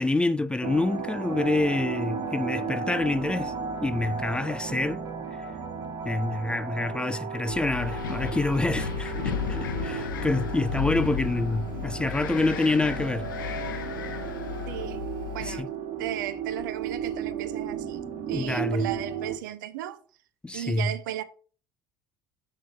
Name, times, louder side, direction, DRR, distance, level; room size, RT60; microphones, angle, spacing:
voice 1, 0.0-3.5 3.8-5.0 5.4-5.5 6.0-13.3 15.4-15.7 18.3-18.9 20.4-20.9, left 2 dB, 10° left, 0.4 m, -27 dB
sound 1, 0.6-19.4, right 6 dB, 50° right, 1.3 m, -34 dB
Wind, 7.5-15.6, left 8 dB, 70° left, 0.8 m, -34 dB
voice 2, 14.7-15.0 15.3-15.7 16.0-20.0 20.5-21.2, right 12 dB, 65° right, 0.6 m, -36 dB
6.4 x 5.3 x 4.6 m
figure-of-eight pair, 65°, 11 cm